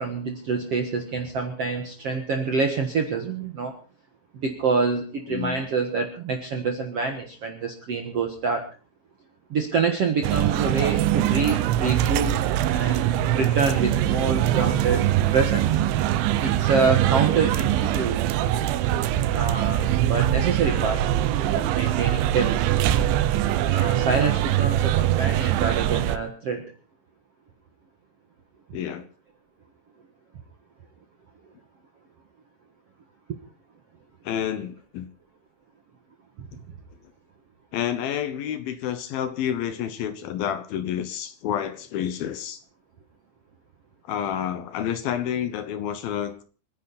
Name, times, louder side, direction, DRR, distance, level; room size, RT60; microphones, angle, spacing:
voice 1, 0.0-3.8 4.4-8.7 9.5-12.3 12.6-15.8 16.4-18.2 19.3-21.1 21.5-22.6 23.7-26.6 33.3-33.4 36.4-36.7, right 4 dB, 70° right, 4 dB, 1.4 m, -26 dB
voice 2, 5.3-5.7 17.6-17.7 28.7-29.1 34.2-35.1 37.7-42.6 44.1-46.4, left 9 dB, 70° left, 11 dB, 2.5 m, -29 dB
sound 1, 10.2-26.2, right 12 dB, 85° right, 3.3 m, -23 dB
27.0 x 10.5 x 4.2 m, 0.36 s
omnidirectional pair, 5.2 m